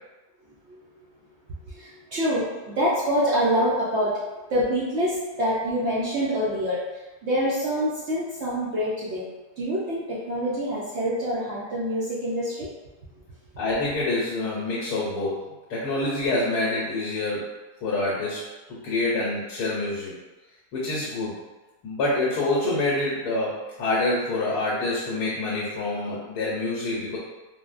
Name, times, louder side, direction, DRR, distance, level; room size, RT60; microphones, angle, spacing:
voice 1, 1.7-4.2 4.5-9.2 9.6-12.7, equal, 65° right, -7 dB, 0.6 m, -26 dB
voice 2, 13.6-17.5 17.8-18.4 18.8-20.1 20.7-21.4 21.8-27.2, left 2 dB, 85° left, -6 dB, 1.2 m, -26 dB
3.6 x 2.0 x 2.4 m, 1.1 s
omnidirectional pair, 1.7 m